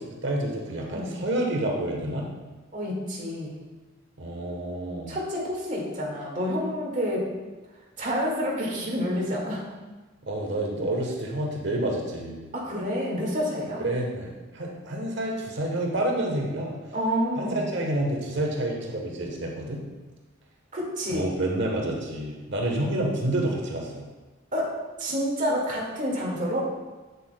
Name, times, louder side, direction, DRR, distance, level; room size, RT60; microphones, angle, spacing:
voice 1, 0.0-2.3 4.2-5.2 10.2-12.4 13.8-16.7 17.4-19.8 21.1-24.0, right 1 dB, 65° right, 0 dB, 1.1 m, -29 dB
voice 2, 2.7-3.5 5.1-7.3 8.0-9.6 12.5-13.8 16.9-17.6 20.7-21.3 24.5-24.7 25.0-26.6, equal, 40° right, -4 dB, 1.9 m, -28 dB
8.4 x 7.8 x 2.2 m, 1.2 s
head